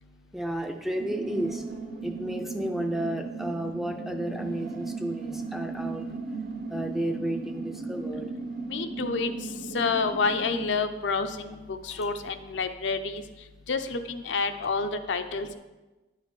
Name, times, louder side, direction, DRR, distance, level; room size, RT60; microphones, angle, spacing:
voice 1, 0.3-1.6 2.0-6.2 6.7-8.3 11.9-12.1, right 1 dB, ahead, 4 dB, 0.4 m, -32 dB
sound 1, 1.0-10.7, right 4 dB, 50° right, 0.9 m, -36 dB
voice 2, 8.7-9.3 9.7-13.2 13.7-15.6, left 4 dB, 80° left, 8 dB, 0.5 m, -29 dB
9.7 x 4.2 x 4.7 m, 1.1 s
head